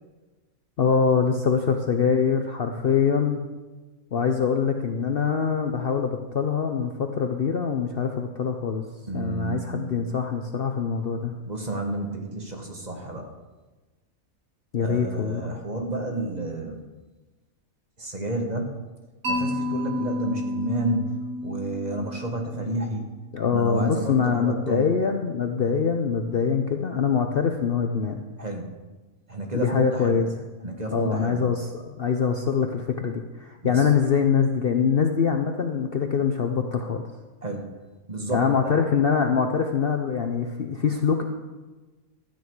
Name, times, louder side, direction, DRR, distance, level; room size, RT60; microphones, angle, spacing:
voice 1, 0.8-3.4 4.1-8.8 9.1-11.4 14.7-15.6 23.3-28.2 29.5-30.3 30.9-37.1 38.3-41.2, left 6 dB, 50° left, 5 dB, 0.7 m, -24 dB
voice 2, 9.1-10.0 11.4-13.3 14.8-16.8 18.0-18.7 19.3-21.1 21.4-23.1 23.5-24.9 28.4-28.7 29.3-30.2 30.6-31.4 33.6-33.7 37.4-37.6 38.1-38.7, right 2 dB, 30° right, 2 dB, 1.4 m, -30 dB
Mallet percussion, 19.2-23.3, left 2 dB, 85° right, 2.8 m, -31 dB
13.0 x 8.8 x 4.7 m, 1.2 s
omnidirectional pair, 1.5 m